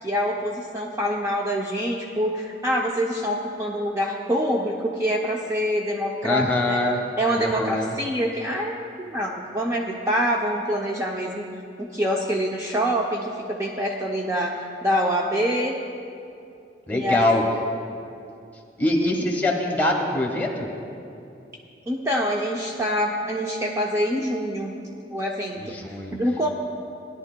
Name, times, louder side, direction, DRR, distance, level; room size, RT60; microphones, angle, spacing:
voice 1, 0.0-6.8 7.2-11.5 11.8-14.5 14.8-15.8 16.9-17.3 21.9-24.7 25.1-25.8 26.1-26.5, equal, 15° right, -2 dB, 0.5 m, -25 dB
voice 2, 6.2-7.0 7.4-7.9 16.9-17.4 18.8-20.7 25.6-26.2, left 1 dB, 10° left, 0 dB, 1.3 m, -23 dB
18.0 x 10.5 x 2.2 m, 2.6 s
head